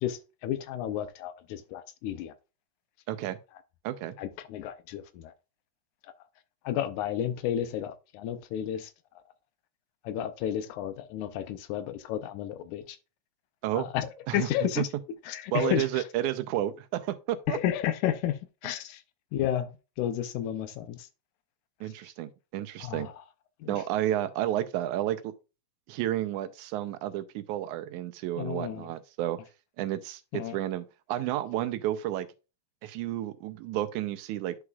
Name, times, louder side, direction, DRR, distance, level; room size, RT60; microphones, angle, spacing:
voice 1, 0.0-2.3 4.2-5.3 6.6-8.9 10.0-13.0 13.8-14.9 15.3-16.0 17.5-19.0 19.3-21.1 22.8-23.1 23.6-23.8 28.4-28.9 30.3-30.6, left 11 dB, 90° left, 2.2 m, -32 dB
voice 2, 3.1-3.4 3.8-4.2 13.6-13.9 14.3-14.8 15.5-17.6 21.8-23.1 23.7-25.3 25.9-29.4 29.8-32.3 32.8-34.6, right 13 dB, 85° right, 2.1 m, -31 dB
11.0 x 4.8 x 2.3 m
omnidirectional pair, 3.4 m